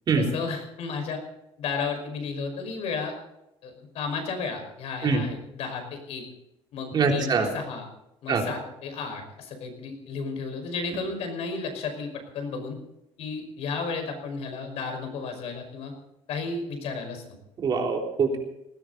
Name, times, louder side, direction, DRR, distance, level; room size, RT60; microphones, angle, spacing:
voice 1, 0.2-1.2 1.6-3.1 3.6-6.2 6.7-7.9 8.2-12.8 13.2-15.9 16.3-17.2, left 4 dB, 70° left, 5 dB, 5.4 m, -33 dB
voice 2, 6.9-7.5 8.3-8.4 17.6-18.4, right 5 dB, 40° right, 1 dB, 3.6 m, -23 dB
19.5 x 16.5 x 4.1 m, 0.86 s
cardioid pair, 150°, 11 cm